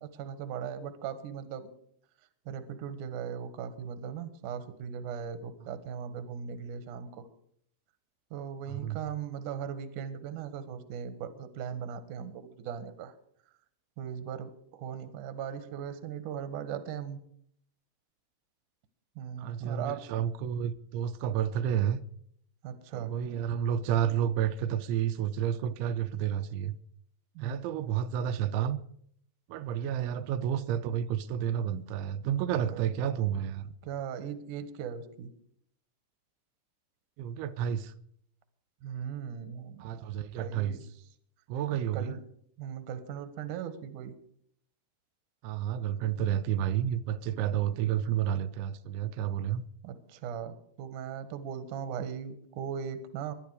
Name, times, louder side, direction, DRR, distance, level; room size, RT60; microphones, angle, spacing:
voice 1, 0.0-1.7 2.5-7.3 8.3-13.1 14.0-17.2 19.2-20.0 22.6-23.1 27.4-27.6 29.9-30.2 32.6-32.9 33.8-35.3 38.8-39.9 40.4-40.8 41.7-42.2 42.6-44.1 49.8-53.3, right 8 dB, 60° right, 2.4 m, -38 dB
voice 2, 8.7-9.0 19.4-22.0 22.9-26.8 27.4-28.8 29.5-33.7 37.2-37.9 39.8-40.8 41.5-42.2 45.4-49.6, right 9 dB, 85° right, 3.2 m, -30 dB
22.0 x 11.5 x 4.9 m
omnidirectional pair, 5.2 m